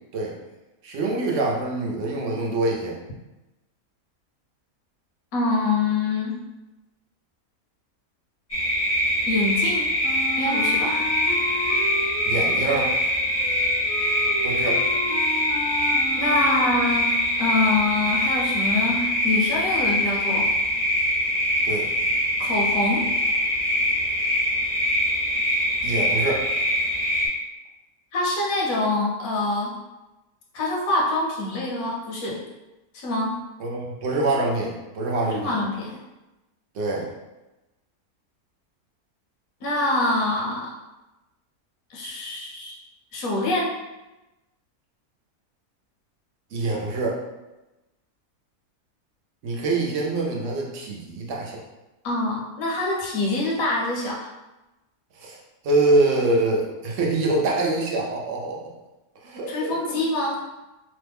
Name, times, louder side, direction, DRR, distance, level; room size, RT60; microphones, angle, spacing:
voice 1, 0.8-3.0 12.2-12.9 14.4-14.8 21.6-21.9 25.8-26.5 33.6-35.6 36.7-37.1 46.5-47.2 49.4-51.6 55.2-55.4 55.6-58.7 59.2-60.0, right 2 dB, 65° right, -2 dB, 0.9 m, -25 dB
voice 2, 5.3-6.4 9.3-9.9 10.4-11.0 16.2-20.5 22.4-23.0 28.1-29.7 30.5-32.4 32.9-33.3 35.2-36.0 39.6-40.7 41.9-42.8 43.1-43.7 52.0-54.3 59.5-60.4, left 2 dB, 75° left, -4 dB, 1.2 m, -25 dB
sound 1, 8.5-27.3, left 1 dB, 25° left, 0.6 m, -23 dB
Wind instrument woodwind instrument, 10.0-17.0, left 1 dB, 35° right, 0.6 m, -33 dB
3.1 x 2.2 x 3.4 m, 1.0 s
omnidirectional pair, 1.5 m